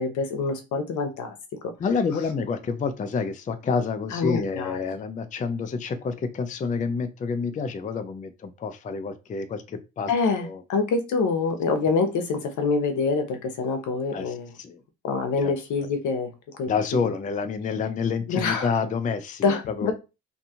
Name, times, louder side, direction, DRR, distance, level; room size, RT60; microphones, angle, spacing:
voice 1, 0.0-1.3 4.1-4.8 10.1-14.6 15.0-16.3 16.6-16.7 18.3-18.7 19.4-19.9, left 4 dB, 75° left, 6 dB, 0.7 m, -25 dB
voice 2, 1.8-10.1 10.4-10.6 14.1-14.8 15.4-15.5 16.7-19.9, left 5 dB, 25° left, 9 dB, 0.4 m, -28 dB
2.6 x 2.3 x 2.8 m, 0.28 s
cardioid pair, 90°, 30 cm